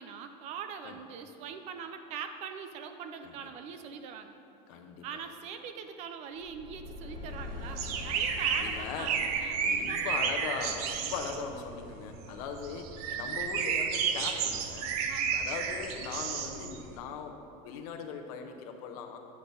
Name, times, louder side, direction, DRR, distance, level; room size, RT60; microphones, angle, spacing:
voice 1, 0.0-4.4 5.0-10.3 15.1-15.4, right 7 dB, 35° right, 8 dB, 0.4 m, -42 dB
voice 2, 4.7-5.0 8.1-8.2 8.5-9.2 9.6-14.9 15.3-19.2, left 6 dB, 70° left, 5 dB, 0.7 m, -39 dB
sound 1, 6.3-11.4, left 3 dB, 50° right, 1.2 m, -44 dB
sound 2, 7.8-16.9, right 6 dB, 70° right, 0.6 m, -32 dB
8.5 x 4.1 x 5.1 m, 2.6 s
cardioid pair, 170°, 20 cm